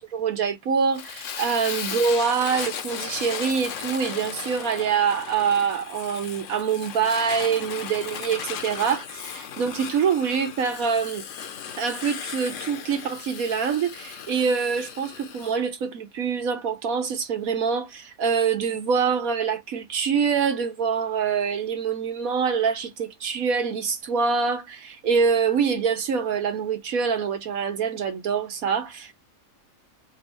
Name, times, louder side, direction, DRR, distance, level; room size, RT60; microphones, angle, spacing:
voice 1, 0.0-11.2 11.8-29.1, right 6 dB, 80° right, 1.6 m, -25 dB
Fire, 0.9-15.6, left 8 dB, 65° left, 1.1 m, -36 dB
4.0 x 2.3 x 4.0 m
omnidirectional pair, 1.5 m